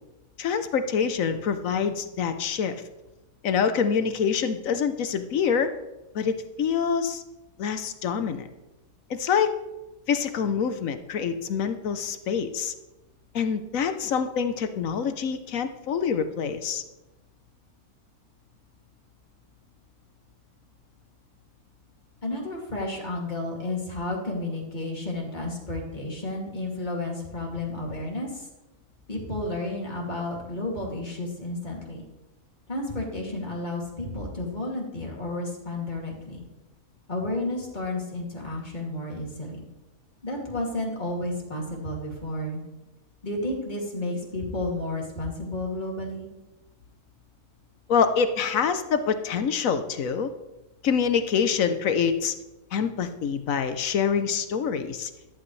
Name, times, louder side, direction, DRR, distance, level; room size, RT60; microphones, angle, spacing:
voice 1, 0.4-2.7 3.4-5.7 6.1-7.2 7.6-8.5 9.1-9.5 10.1-12.7 13.3-16.8 47.9-50.3 50.8-52.3 52.7-55.1, left 6 dB, 70° left, 10 dB, 1.2 m, -26 dB
voice 2, 22.2-28.5 29.1-32.1 32.7-36.4 37.1-39.6 40.2-42.6 43.2-46.3, left 2 dB, 30° left, -2 dB, 2.7 m, -32 dB
14.0 x 11.5 x 3.2 m, 1.0 s
omnidirectional pair, 1.5 m